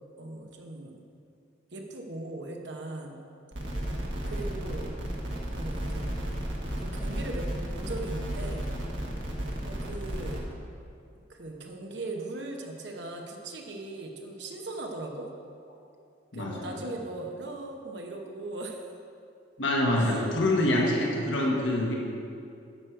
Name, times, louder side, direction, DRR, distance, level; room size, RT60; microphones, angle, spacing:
voice 1, 0.2-1.0 1.7-3.2 4.3-4.9 5.5-6.2 6.8-8.7 9.6-10.6 11.3-15.3 16.3-18.8 20.0-20.3 20.8-21.0, right 2 dB, 65° right, 2 dB, 1.1 m, -39 dB
sound 1, 3.5-10.4, equal, 85° right, 1.5 m, -33 dB
voice 2, 16.3-16.8 19.6-21.9, left 1 dB, 85° left, -2 dB, 1.4 m, -26 dB
10.5 x 6.4 x 4.6 m, 2.5 s
head